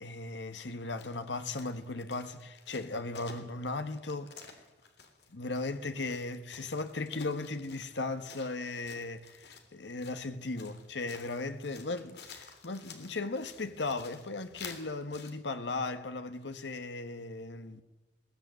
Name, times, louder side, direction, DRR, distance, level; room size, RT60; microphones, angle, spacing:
voice 1, 0.0-4.3 5.3-17.8, left 3 dB, 80° left, 1.3 m, -37 dB
sound 1, 0.6-15.3, left 5 dB, 65° left, 3.1 m, -52 dB
21.5 x 16.0 x 9.4 m
head